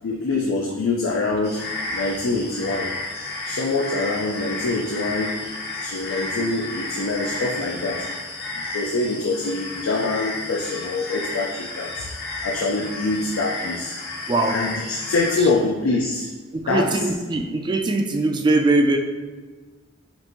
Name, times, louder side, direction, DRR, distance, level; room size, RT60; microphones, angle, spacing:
voice 1, 0.0-1.6 1.9-2.9 3.4-5.4 5.8-8.1 8.7-12.1 12.4-14.0 14.5-16.3 16.7-16.9, left 3 dB, 85° left, -1 dB, 0.4 m, -25 dB
sound 1, 1.4-15.5, left 2 dB, 55° left, 1.0 m, -32 dB
voice 2, 16.5-19.0, right 2 dB, 20° right, 4 dB, 0.3 m, -21 dB
5.2 x 2.6 x 3.0 m, 1.3 s
head